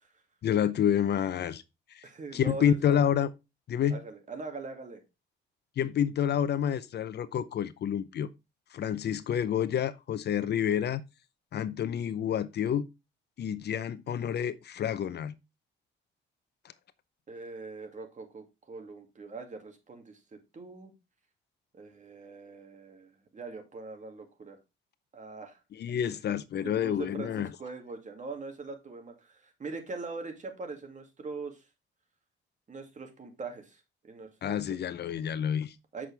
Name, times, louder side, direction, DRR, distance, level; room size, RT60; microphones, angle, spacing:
voice 1, 0.4-1.6 1.9-2.1 2.3-3.3 3.7-4.0 5.8-8.3 8.7-11.0 11.5-12.9 13.4-15.3 25.7-27.5 34.4-35.7, left 9 dB, 55° left, 0.7 m, -28 dB
voice 2, 2.0-2.8 3.9-5.0 17.3-20.9 21.7-24.6 25.1-25.6 26.2-26.3 26.6-31.7 32.7-34.8 35.9-36.1, right 3 dB, 40° right, 2.3 m, -42 dB
7.6 x 6.2 x 3.3 m
cardioid pair, 90°, 20 cm